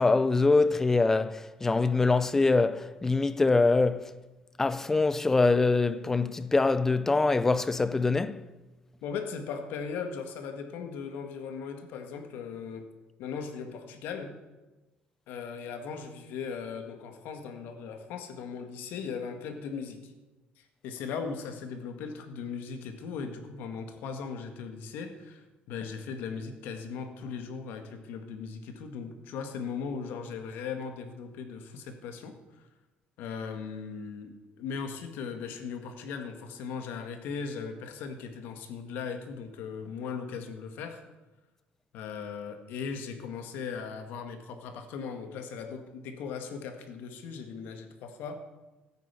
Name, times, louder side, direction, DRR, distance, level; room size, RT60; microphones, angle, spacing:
voice 1, 0.0-4.1 4.6-8.5, left 3 dB, 10° left, 0.5 m, -24 dB
voice 2, 9.0-12.9 13.2-14.4 15.3-20.1 20.6-32.6 33.2-41.0 41.9-48.4, left 6 dB, 70° left, 1.9 m, -38 dB
14.5 x 9.2 x 8.3 m
cardioid pair, 175°, 3 cm